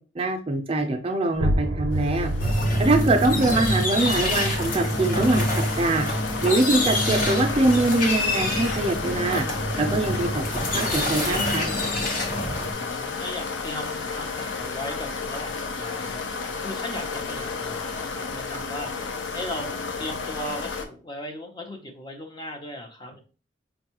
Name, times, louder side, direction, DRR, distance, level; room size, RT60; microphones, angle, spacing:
voice 1, 0.2-2.3 2.8-5.5 5.8-6.1 6.4-9.4 9.8-10.4 10.7-11.7, right 2 dB, 30° right, 5 dB, 0.4 m, -23 dB
sound 1, 1.3-6.9, right 1 dB, 75° right, 0.6 m, -31 dB
sound 2, 1.9-20.8, left 4 dB, 90° left, 0.6 m, -32 dB
sound 3, 2.4-12.7, left 1 dB, 50° left, 1.0 m, -26 dB
voice 2, 12.7-16.3 16.6-18.9 19.3-23.2, left 1 dB, 25° left, 3 dB, 0.6 m, -37 dB
5.3 x 2.3 x 2.9 m, 0.36 s
head